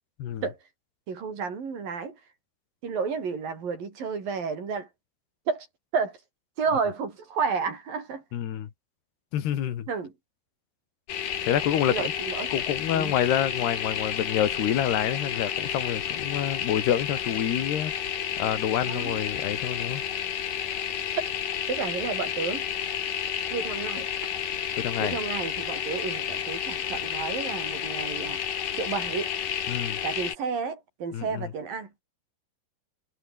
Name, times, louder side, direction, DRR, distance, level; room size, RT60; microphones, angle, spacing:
voice 1, 1.1-2.2 2.8-4.9 5.5-5.7 5.9-6.2 6.6-8.2 9.9-10.1 11.9-12.5 12.9-13.2 18.9-19.2 21.2-21.3 21.7-22.7 23.5-24.1 25.0-28.4 28.7-29.3 30.0-31.9, right 5 dB, 60° right, 6.3 m, -31 dB
voice 2, 8.3-8.7 9.3-9.9 11.4-12.1 12.5-17.9 18.4-20.0 24.8-25.2 29.7-30.0 31.1-31.5, left 10 dB, 85° left, 4.2 m, -27 dB
sound 1, 11.1-30.4, left 9 dB, 60° left, 3.5 m, -31 dB
omnidirectional pair, 4.6 m